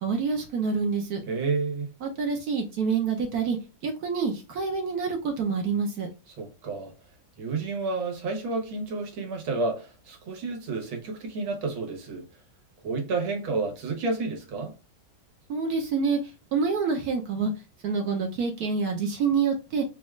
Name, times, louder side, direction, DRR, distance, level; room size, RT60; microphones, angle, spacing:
voice 1, 0.0-1.2 2.0-3.6 3.8-6.1 15.5-16.2 16.5-17.5 17.8-19.8, right 5 dB, 65° right, 1.0 m, -27 dB
voice 2, 1.3-1.9 6.3-6.9 7.4-12.2 12.8-14.7, right 3 dB, 90° right, 1.9 m, -30 dB
4.1 x 2.3 x 3.1 m
omnidirectional pair, 2.1 m